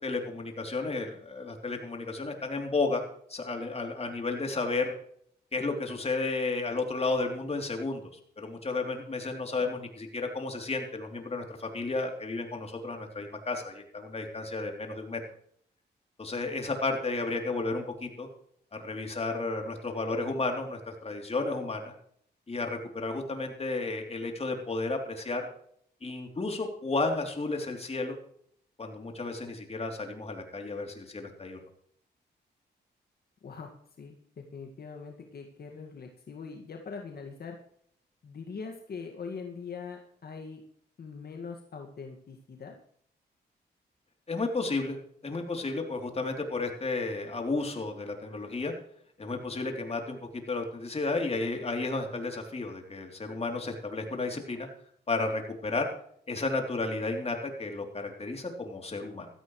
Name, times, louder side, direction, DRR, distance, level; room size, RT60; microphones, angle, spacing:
voice 1, 0.0-3.0 3.3-4.9 5.5-8.0 8.4-15.2 16.2-18.3 18.7-21.9 22.5-25.5 26.0-28.2 28.8-31.6 44.3-45.0 45.2-48.7 49.2-54.7 55.1-55.9 56.3-59.3, left 3 dB, 35° left, 3 dB, 3.4 m, -32 dB
voice 2, 34.0-37.6 38.2-40.6 41.0-42.7, left 5 dB, 60° left, 2 dB, 2.1 m, -42 dB
16.0 x 14.0 x 3.3 m, 0.66 s
cardioid pair, 80°, 18 cm